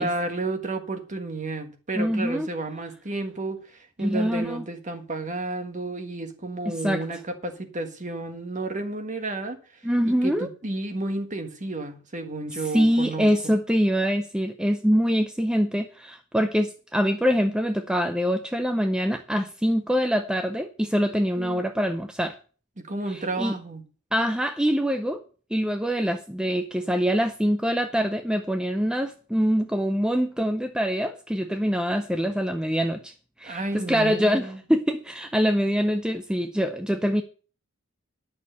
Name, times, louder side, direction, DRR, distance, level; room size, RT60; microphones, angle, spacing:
voice 1, 0.0-9.6 10.0-13.3 21.4-21.6 22.8-23.8 33.4-34.6, right 2 dB, 35° right, 1.6 m, -32 dB
voice 2, 1.9-2.5 4.0-4.6 6.8-7.2 9.8-10.5 12.5-22.4 23.1-23.5 24.1-25.2 25.5-33.1 33.4-37.2, equal, 5° right, 0.5 m, -24 dB
10.5 x 6.5 x 6.7 m
head